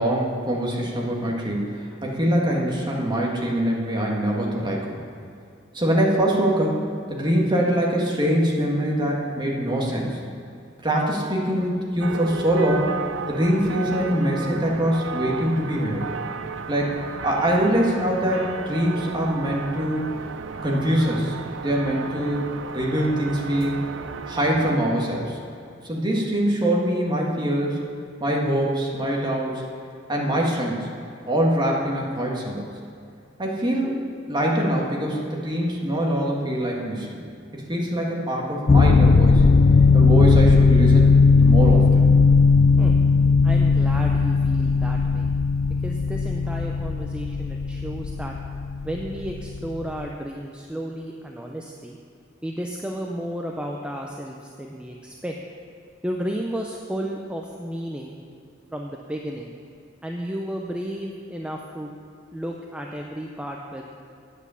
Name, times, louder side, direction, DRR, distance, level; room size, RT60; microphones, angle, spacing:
voice 1, 0.0-5.0 5.7-6.8 7.1-10.2 10.8-12.9 13.3-16.1 16.7-20.0 20.6-21.3 21.6-23.8 24.3-25.4 25.8-27.9 28.2-29.6 30.1-30.9 31.2-32.7 33.4-34.0 34.3-37.2 37.5-39.4 39.9-41.1 41.4-42.0, equal, 25° right, -2 dB, 1.7 m, -23 dB
sound 1, 12.0-24.8, right 5 dB, 85° right, 0.5 m, -34 dB
sound 2, 38.7-50.0, left 4 dB, 40° left, 0.4 m, -17 dB
voice 2, 43.4-45.3 45.8-48.4 48.8-52.0 52.4-55.3 56.0-58.2 58.7-59.5 60.0-61.9 62.3-63.9, equal, 5° right, 0 dB, 0.6 m, -33 dB
9.5 x 8.4 x 7.0 m, 2.5 s
head